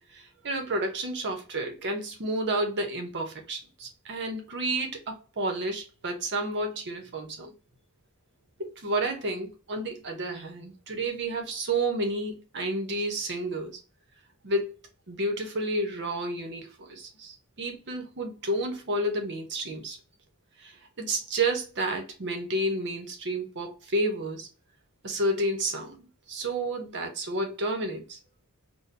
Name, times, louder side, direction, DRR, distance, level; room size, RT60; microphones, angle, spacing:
voice 1, 0.1-7.5 8.6-13.8 14.4-14.7 15.1-20.0 20.6-24.5 25.0-28.2, right 1 dB, 50° right, 0.8 m, -31 dB
4.2 x 2.2 x 2.5 m
head